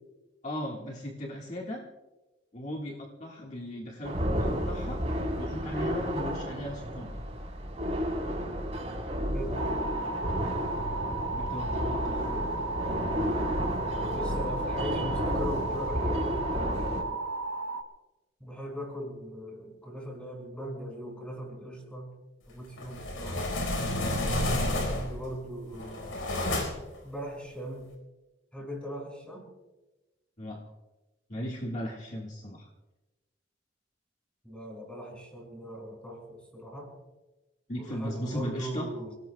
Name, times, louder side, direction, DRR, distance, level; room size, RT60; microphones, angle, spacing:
voice 1, 0.4-1.8 2.5-5.0 5.4-7.2 11.3-12.3 24.7-24.8 30.4-30.6 31.3-32.7 37.7-38.9, equal, 35° left, -2 dB, 1.6 m, -37 dB
sound 1, 4.0-17.0, equal, 30° right, 3.7 m, -32 dB
voice 2, 9.1-10.2 14.1-17.1 18.4-22.1 22.5-23.5 24.7-26.7 27.0-27.9 28.5-29.5 34.4-36.9 37.7-39.1, equal, 5° left, -1 dB, 6.1 m, -40 dB
sound 2, 9.5-17.8, right 3 dB, 80° right, 1.1 m, -34 dB
sound 3, 22.8-25.2 25.7-27.0, left 1 dB, 80° left, 4.4 m, -30 dB
28.5 x 18.5 x 2.3 m, 1.1 s
head